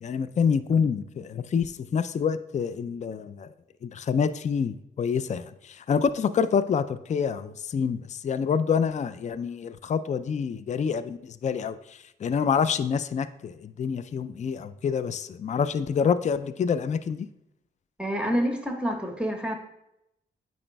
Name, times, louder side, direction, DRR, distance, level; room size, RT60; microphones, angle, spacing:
voice 1, 0.0-3.5 3.8-17.3, left 6 dB, 40° left, 14 dB, 0.4 m, -27 dB
voice 2, 18.0-19.6, equal, 5° right, 3 dB, 1.3 m, -27 dB
8.5 x 5.2 x 2.3 m, 0.84 s
cardioid pair, 50°, 19 cm